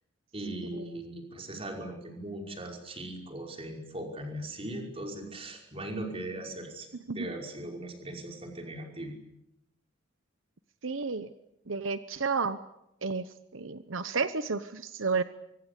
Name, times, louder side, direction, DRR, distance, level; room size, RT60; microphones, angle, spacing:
voice 1, 0.3-9.1, right 1 dB, 30° right, 2 dB, 5.5 m, -39 dB
voice 2, 10.8-11.3 11.7-12.6 13.0-13.2 13.5-15.2, right 4 dB, 80° right, 12 dB, 1.0 m, -31 dB
24.5 x 24.5 x 8.4 m, 0.82 s
head